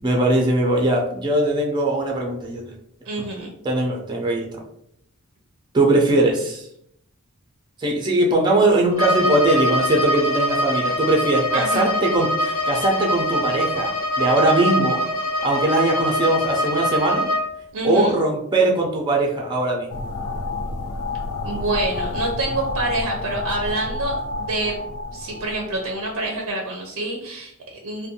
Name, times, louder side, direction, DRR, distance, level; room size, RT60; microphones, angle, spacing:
voice 1, 0.0-2.6 3.6-4.6 5.7-6.7 7.8-15.0 15.4-17.3 17.8-20.0, right 2 dB, 20° right, 0 dB, 0.4 m, -20 dB
voice 2, 3.1-3.5 11.5-11.9 17.7-18.2 21.4-24.8 25.1-28.1, right 2 dB, 75° right, 0 dB, 0.5 m, -27 dB
Bowed string instrument, 8.9-17.5, equal, 85° left, 0.9 m, -23 dB
sound 1, 19.9-26.3, left 3 dB, 70° left, 0.4 m, -29 dB
2.5 x 2.1 x 2.7 m, 0.69 s
head